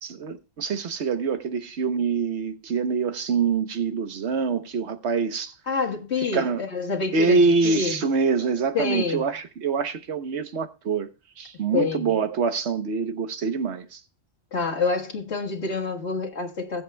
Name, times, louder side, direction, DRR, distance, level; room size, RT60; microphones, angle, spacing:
voice 1, 0.0-5.5 6.3-6.6 7.1-11.1 11.4-14.0, right 4 dB, 75° right, 1.2 m, -25 dB
voice 2, 5.7-7.4 7.6-8.0 8.7-9.2 11.7-12.1 14.5-16.8, left 4 dB, 75° left, 1.8 m, -27 dB
21.5 x 7.8 x 2.2 m
omnidirectional pair, 1.1 m